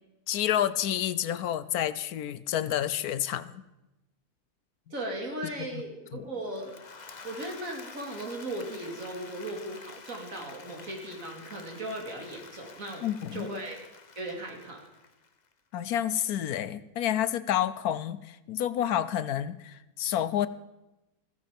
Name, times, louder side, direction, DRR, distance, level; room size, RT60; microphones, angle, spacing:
voice 1, 0.3-3.6 5.7-5.8 6.1-6.2 13.0-13.5 15.7-20.5, left 11 dB, 75° left, 15 dB, 1.1 m, -29 dB
voice 2, 4.9-6.7 7.2-13.1 13.3-13.8 14.2-14.9, right 1 dB, 60° right, 1 dB, 3.2 m, -37 dB
Applause / Crowd, 6.4-15.5, left 4 dB, 35° left, 0.9 m, -49 dB
15.0 x 14.5 x 5.2 m, 0.97 s
omnidirectional pair, 1.6 m